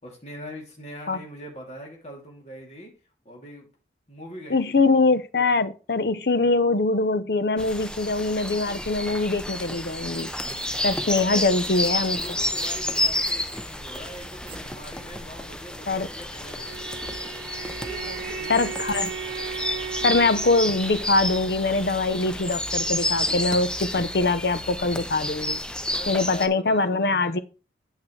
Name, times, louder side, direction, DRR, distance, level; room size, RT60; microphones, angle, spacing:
voice 1, 0.0-2.9 3.2-3.7 4.1-4.8 11.0-11.6 12.0-17.0 17.8-19.0 25.8-27.4, equal, 40° left, 2.9 m, -42 dB
voice 2, 4.5-10.3 10.8-12.2 15.9-16.1 18.5-19.1 20.0-25.6 26.1-27.4, left 3 dB, 65° left, 0.7 m, -23 dB
sound 1, 7.6-26.5, left 1 dB, 5° left, 0.6 m, -30 dB
sound 2, 10.1-15.1, right 4 dB, 30° right, 1.3 m, -45 dB
Bowed string instrument, 16.4-21.2, right 8 dB, 75° right, 0.4 m, -36 dB
8.5 x 8.1 x 3.2 m
head